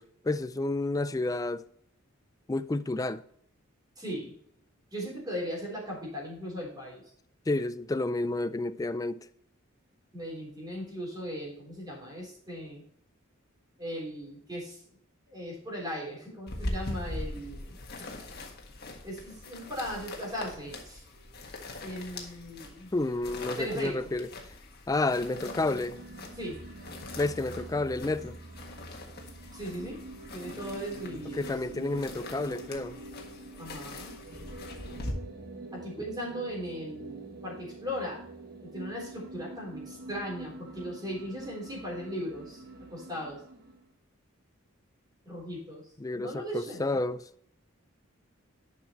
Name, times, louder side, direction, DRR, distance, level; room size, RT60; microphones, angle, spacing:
voice 1, 0.0-1.6 2.5-3.2 7.5-9.3 22.9-24.3 24.9-26.0 27.2-28.4 31.4-33.0 46.0-47.2, left 2 dB, 15° left, 0.4 m, -30 dB
voice 2, 4.0-4.3 4.9-7.0 10.1-12.8 13.8-14.8 15.3-17.8 19.0-21.0 21.8-22.9 23.6-24.1 26.3-26.6 29.5-30.0 30.3-31.9 33.6-34.1 35.7-38.2 38.7-42.6 42.9-43.4 45.2-47.0, equal, 20° right, 3.5 m, -38 dB
sound 1, 16.5-35.1, left 2 dB, 50° left, 1.6 m, -42 dB
sound 2, 25.3-43.9, right 2 dB, 45° right, 1.2 m, -45 dB
11.0 x 5.8 x 3.0 m
head